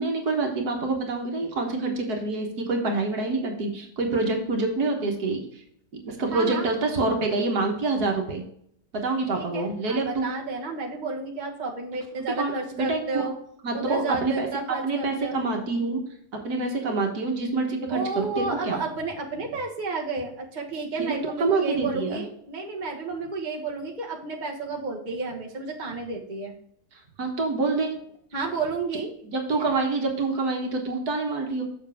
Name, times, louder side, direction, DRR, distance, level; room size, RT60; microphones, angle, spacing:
voice 1, 0.0-5.4 6.0-8.4 8.9-10.2 12.4-13.0 13.6-16.0 16.4-18.8 21.0-21.1 21.4-22.2 27.2-27.9 29.3-31.6, right 3 dB, 70° right, 2 dB, 1.8 m, -26 dB
voice 2, 6.3-6.7 9.2-13.3 13.7-15.4 17.9-26.5 28.3-29.1, right 4 dB, 30° right, -1 dB, 1.4 m, -31 dB
7.2 x 6.6 x 3.5 m, 0.69 s
omnidirectional pair, 1.7 m